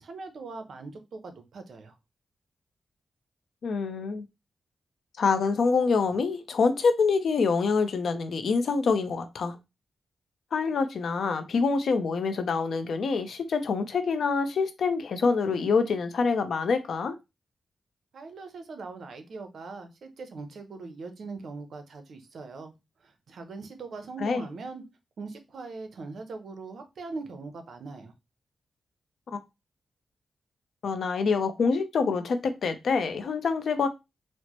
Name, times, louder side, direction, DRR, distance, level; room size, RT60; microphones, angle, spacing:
voice 1, 0.0-2.0 18.1-22.7 23.0-24.8 25.2-28.1, right 3 dB, 70° right, 0.7 m, -41 dB
voice 2, 3.6-4.3 5.2-9.6 10.5-17.2 24.2-24.4 30.8-33.9, left 4 dB, 70° left, 0.5 m, -26 dB
4.3 x 2.1 x 2.9 m
wide cardioid pair, 120°, 0 cm